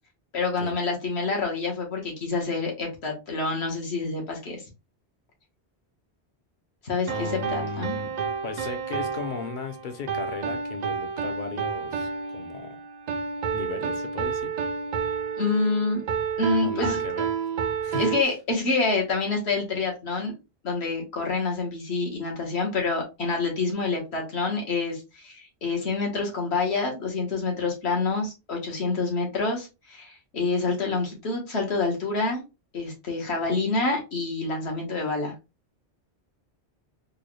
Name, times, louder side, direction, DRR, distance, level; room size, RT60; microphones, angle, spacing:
voice 1, 0.3-4.6 6.8-8.0 15.4-16.0 16.4-17.0 18.0-20.3 20.6-32.4 32.7-35.3, left 3 dB, 75° left, 1.5 m, -27 dB
voice 2, 7.1-8.1 8.4-12.8 13.5-14.5 16.6-17.3 17.8-18.1, left 5 dB, 55° left, 0.8 m, -36 dB
sound 1, 7.1-18.2, right 6 dB, 55° right, 0.5 m, -30 dB
4.5 x 2.2 x 3.1 m
omnidirectional pair, 1.1 m